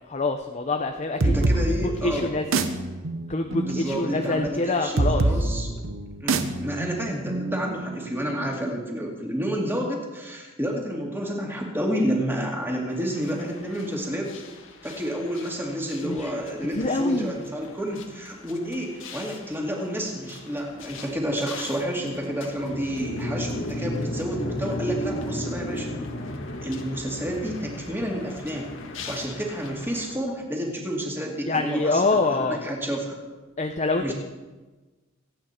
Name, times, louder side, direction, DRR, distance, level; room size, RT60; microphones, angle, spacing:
voice 1, 0.1-1.7 2.0-2.6 3.3-5.3 16.0-16.3 16.7-17.3 31.5-32.7 33.6-34.1, left 2 dB, 35° left, 5 dB, 0.7 m, -25 dB
voice 2, 1.2-2.3 3.5-5.9 6.2-14.3 14.8-25.9 26.6-28.7 29.1-33.2 34.0-34.1, equal, 10° right, 0 dB, 2.5 m, -30 dB
sound 1, 1.2-8.6, right 2 dB, 80° right, 1.0 m, -27 dB
sound 2, 12.9-30.2, left 1 dB, 70° left, 1.7 m, -36 dB
26.5 x 9.0 x 4.4 m, 1.2 s
head